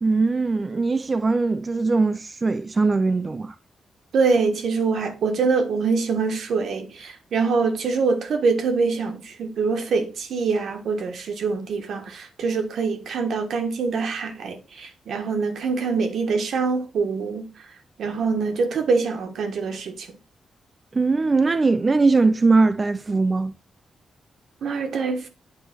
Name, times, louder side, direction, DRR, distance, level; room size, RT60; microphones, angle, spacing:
voice 1, 0.0-3.6 20.9-23.6, right 3 dB, 30° right, 0.3 m, -20 dB
voice 2, 4.1-17.5 18.0-20.1 24.6-25.3, right 4 dB, 70° right, 1.3 m, -24 dB
8.1 x 3.1 x 6.0 m
cardioid pair, 115°, 0 cm